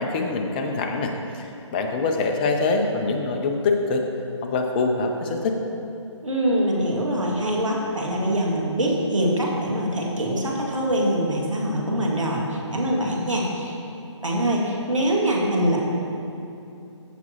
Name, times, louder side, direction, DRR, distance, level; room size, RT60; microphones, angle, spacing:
voice 1, 0.0-4.1 4.4-5.6, left 3 dB, 20° left, 4 dB, 0.5 m, -24 dB
voice 2, 6.2-13.8 14.2-15.8, right 1 dB, 85° right, -2 dB, 2.0 m, -24 dB
15.0 x 5.9 x 2.9 m, 2.8 s
figure-of-eight pair, 150°, 16 cm